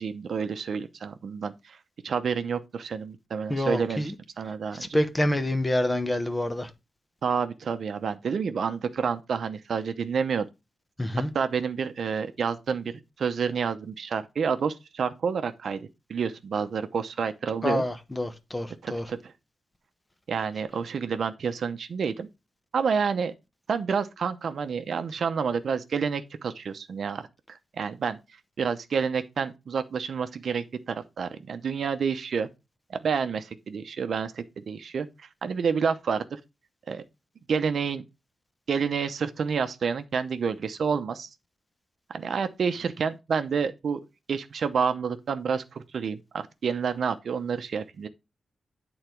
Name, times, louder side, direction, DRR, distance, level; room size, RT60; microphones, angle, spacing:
voice 1, 0.0-1.8 2.0-5.0 7.2-10.5 11.3-12.9 13.2-17.8 18.8-19.3 20.3-22.3 22.7-23.3 23.7-27.3 27.7-28.2 28.6-32.5 32.9-36.4 36.9-37.0 37.5-38.0 38.7-41.3 42.1-44.0 44.3-48.1, right 6 dB, 65° right, 0.7 m, -29 dB
voice 2, 3.5-4.2 4.7-6.7 11.0-11.3 17.6-19.1, left 1 dB, 15° left, 0.9 m, -27 dB
8.8 x 4.0 x 4.5 m
wide cardioid pair, 125°, 0 cm